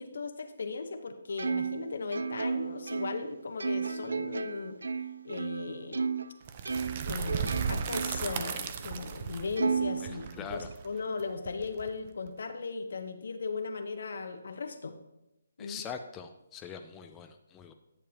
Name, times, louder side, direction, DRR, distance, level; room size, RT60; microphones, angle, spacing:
voice 1, 0.0-4.8 5.2-6.0 7.0-15.0 15.6-15.8, left 4 dB, 70° left, 8 dB, 1.0 m, -37 dB
Plucked string instrument, 1.4-6.3 6.6-8.4 8.8-8.9 9.6-10.7, right 5 dB, 80° right, 0.3 m, -34 dB
sound 1, 6.5-12.3, right 6 dB, 35° right, 0.6 m, -36 dB
voice 2, 10.1-10.7 15.6-17.7, left 6 dB, 15° left, 5 dB, 0.4 m, -43 dB
11.0 x 6.9 x 2.9 m, 0.91 s
hypercardioid pair, 155°, 0 cm